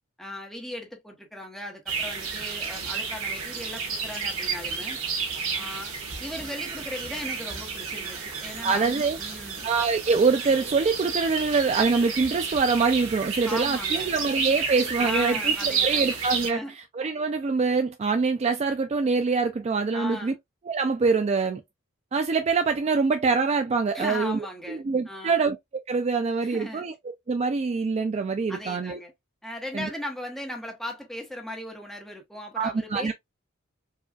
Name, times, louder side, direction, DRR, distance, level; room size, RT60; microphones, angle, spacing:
voice 1, 0.2-5.0 5.5-5.9 6.2-8.9 9.2-9.7 13.4-14.2 15.0-16.2 16.5-16.7 19.9-20.4 23.9-25.4 26.4-26.8 28.5-29.1 29.4-33.1, left 1 dB, ahead, 1.0 m, -37 dB
sound 1, 1.9-16.5, right 5 dB, 85° right, 1.6 m, -31 dB
voice 2, 8.6-9.2 9.6-15.5 15.8-20.3 20.7-21.6 22.1-24.4 24.7-25.6 25.9-26.9 27.3-29.0 29.7-29.9 32.6-33.1, right 4 dB, 30° right, 0.3 m, -24 dB
4.8 x 2.4 x 2.3 m
head